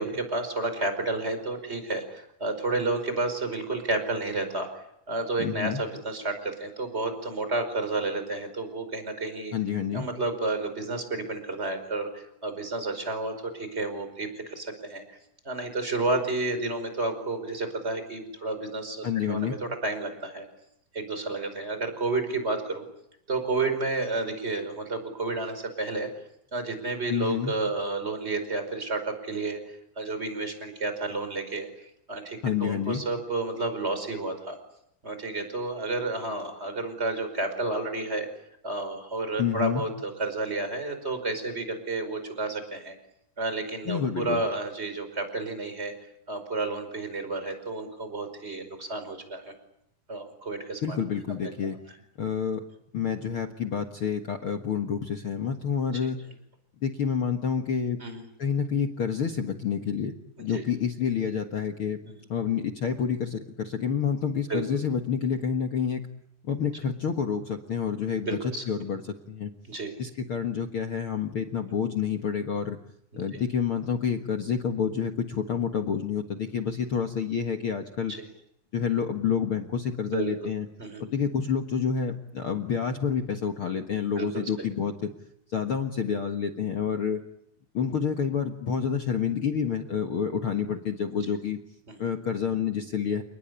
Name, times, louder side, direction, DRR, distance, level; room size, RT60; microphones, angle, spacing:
voice 1, 0.0-9.5 9.9-15.2 15.4-20.4 20.9-22.9 23.3-26.1 26.5-29.6 30.0-34.6 35.0-38.3 38.6-42.9 43.4-45.9 46.3-49.5 50.1-51.0 58.0-58.2 60.5-60.6 62.0-62.1 64.5-64.6 68.2-68.6 69.7-69.9 78.1-78.2 80.1-80.3 80.8-81.0 84.2-84.3 91.9-92.0, right 2 dB, 15° right, 8 dB, 5.0 m, -31 dB
voice 2, 5.4-5.8 9.5-10.1 19.0-19.6 27.1-27.5 32.4-33.0 39.4-39.8 43.8-44.4 50.8-51.8 52.2-52.6 52.9-56.2 56.8-58.0 58.4-62.0 62.3-66.0 66.4-69.5 70.0-72.8 73.2-78.1 78.7-80.7 81.0-85.1 85.5-87.2 87.7-91.6 92.0-93.2, left 7 dB, 50° left, 5 dB, 1.7 m, -28 dB
29.5 x 19.5 x 10.0 m, 0.76 s
omnidirectional pair, 4.4 m